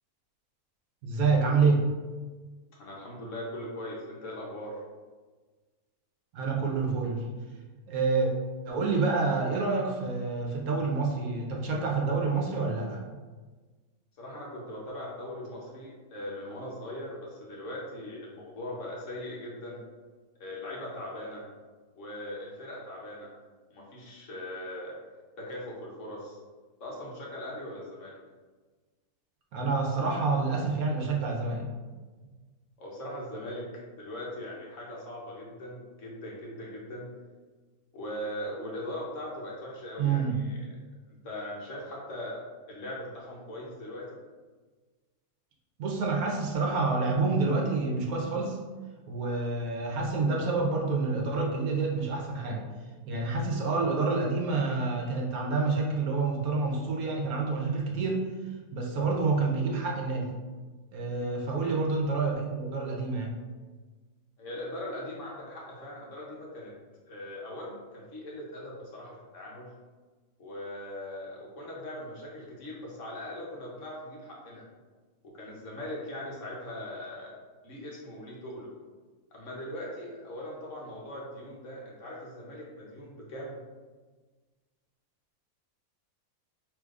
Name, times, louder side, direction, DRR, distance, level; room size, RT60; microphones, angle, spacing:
voice 1, 1.0-1.9 6.3-7.2 7.9-8.3 8.7-13.0 29.5-31.7 40.0-40.4 45.8-48.6 49.1-52.6 53.1-58.3 58.7-60.3 60.9-63.3, right 4 dB, 75° right, -1 dB, 1.2 m, -28 dB
voice 2, 2.7-4.8 14.2-19.8 20.4-21.4 22.0-23.3 23.7-25.0 25.4-26.4 26.8-28.1 32.8-33.7 34.0-37.1 37.9-40.7 41.1-42.4 42.7-44.2 61.5-61.7 64.4-66.7 67.1-69.7 70.4-74.6 75.2-77.3 77.6-78.7 79.3-83.6, left 1 dB, 60° left, -3 dB, 1.1 m, -40 dB
5.0 x 3.1 x 2.4 m, 1.4 s
omnidirectional pair, 1.6 m